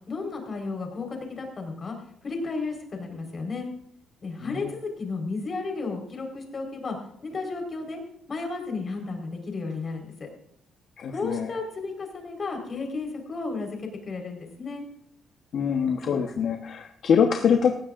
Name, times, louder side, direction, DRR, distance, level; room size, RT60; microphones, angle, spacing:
voice 1, 0.1-2.0 2.2-3.7 4.2-7.0 7.2-8.0 8.3-10.3 11.1-14.8, left 3 dB, 30° left, 3 dB, 4.4 m, -33 dB
voice 2, 11.0-11.5 15.5-17.7, left 7 dB, 55° left, 3 dB, 1.2 m, -24 dB
19.0 x 16.0 x 2.6 m, 0.72 s
cardioid pair, 145°, 0 cm